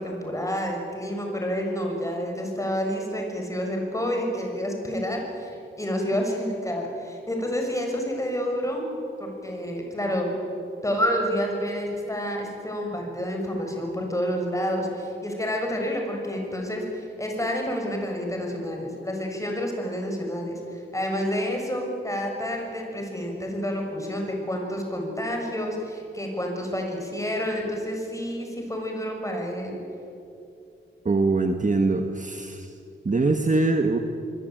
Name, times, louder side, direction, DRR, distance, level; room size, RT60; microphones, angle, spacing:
voice 1, 0.0-8.8 9.2-10.3 10.8-29.8, equal, 15° left, 1 dB, 6.6 m, -29 dB
voice 2, 31.0-32.7 33.0-34.0, right 3 dB, 40° right, 5 dB, 1.5 m, -23 dB
25.5 x 22.5 x 9.2 m, 2.7 s
wide cardioid pair, 95°, 20 cm